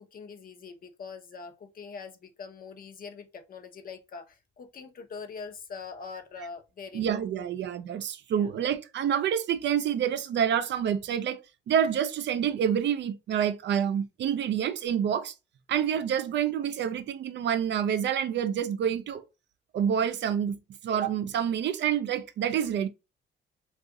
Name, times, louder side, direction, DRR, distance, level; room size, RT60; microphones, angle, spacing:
voice 1, 0.0-7.5 8.3-8.5, left 5 dB, 45° left, 0.7 m, -43 dB
voice 2, 6.9-11.4 11.7-15.3 15.7-19.2 19.7-20.6 20.8-22.9, right 9 dB, 65° right, 0.5 m, -27 dB
2.6 x 2.3 x 3.6 m
cardioid pair, 90°, 20 cm